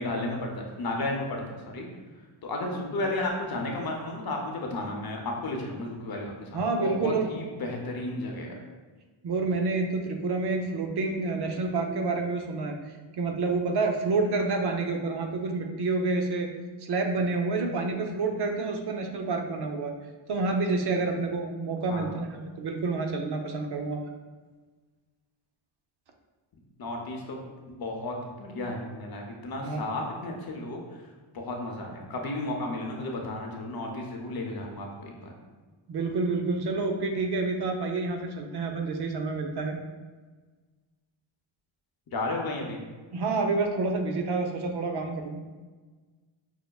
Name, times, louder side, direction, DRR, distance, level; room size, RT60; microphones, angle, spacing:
voice 1, 0.0-1.9 2.4-8.6 21.9-22.1 26.8-27.4 27.7-30.8 31.3-35.3 42.1-42.8, left 2 dB, 45° left, 1 dB, 0.7 m, -33 dB
voice 2, 6.5-7.3 9.2-12.8 13.2-16.5 16.8-19.9 20.3-24.1 29.6-29.9 35.9-39.8 43.1-45.4, right 3 dB, 55° right, 3 dB, 0.5 m, -28 dB
5.6 x 2.0 x 2.3 m, 1.4 s
cardioid pair, 80°, 49 cm